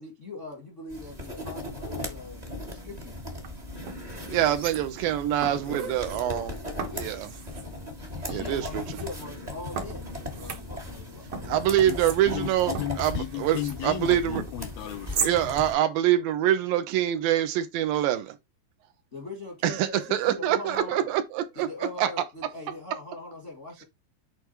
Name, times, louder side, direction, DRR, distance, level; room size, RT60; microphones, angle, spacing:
voice 1, 0.0-3.2 8.3-11.6 19.1-21.1 21.5-23.8, left 3 dB, 45° left, 0.9 m, -41 dB
sound 1, 0.9-15.7, left 1 dB, 40° right, 0.5 m, -38 dB
sound 2, 3.3-3.5 3.9-5.1 5.4-6.2 6.8-7.7 8.3-9.1 9.8-11.0 11.3-13.8 14.3-15.4 15.7-15.8, right 6 dB, 55° right, 1.7 m, -37 dB
voice 2, 4.3-6.6 6.9-7.4 8.2-8.8 11.5-14.4 15.2-18.4 19.6-21.7 22.0-22.1, right 11 dB, 80° right, 2.4 m, -25 dB
voice 3, 5.1-7.1 8.3-8.5 11.9-12.0 12.3-15.3, left 12 dB, 90° left, 2.5 m, -37 dB
8.1 x 3.4 x 4.5 m
omnidirectional pair, 4.2 m